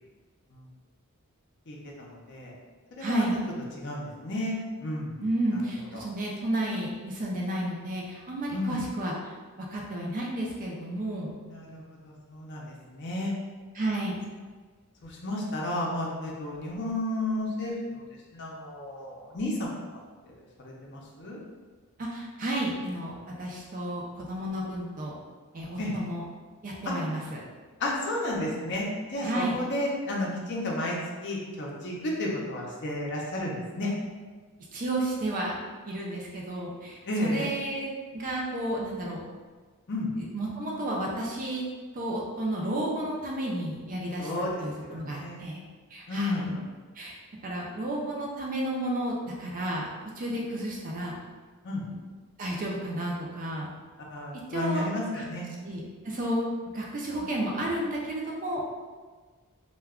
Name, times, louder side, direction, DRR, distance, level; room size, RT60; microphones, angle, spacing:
voice 1, 1.7-2.5 3.0-3.3 3.8-5.6 5.9-6.0 8.5-8.8 11.4-13.3 15.0-18.0 18.3-19.6 20.3-21.4 25.8-25.9 26.9-27.0 27.8-33.9 37.0-37.5 39.9-40.1 44.2-45.4 46.1-46.6 50.3-50.4 51.6-51.8 54.1-55.4 57.2-57.3, left 1 dB, 50° left, -3 dB, 0.6 m, -32 dB
voice 2, 3.0-3.4 5.2-9.3 9.7-11.3 13.7-14.2 22.0-25.1 25.5-26.2 26.6-27.4 29.2-29.6 34.7-35.5 35.9-39.2 40.2-41.6 41.9-44.3 44.6-45.6 45.9-46.6 47.0-47.2 47.4-49.9 50.2-51.2 52.4-53.7 54.5-54.9 55.6-56.4 56.7-58.6, right 1 dB, 35° right, -3 dB, 0.4 m, -32 dB
2.2 x 2.2 x 3.5 m, 1.4 s
head